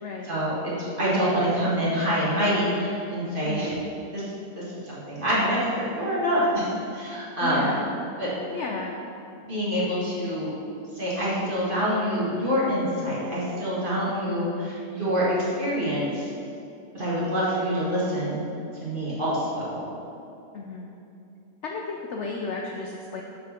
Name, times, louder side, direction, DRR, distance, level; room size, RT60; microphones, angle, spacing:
voice 1, 0.3-3.7 4.1-4.2 4.6-7.8 8.2-8.3 9.5-10.5 10.9-16.3 16.9-18.5 18.8-19.8, equal, 30° right, -8 dB, 1.8 m, -26 dB
voice 2, 7.4-7.9 8.5-9.0 14.1-14.5 20.5-20.9 21.6-23.2, left 3 dB, 75° left, 0 dB, 0.6 m, -33 dB
6.1 x 4.9 x 5.8 m, 2.7 s
omnidirectional pair, 1.8 m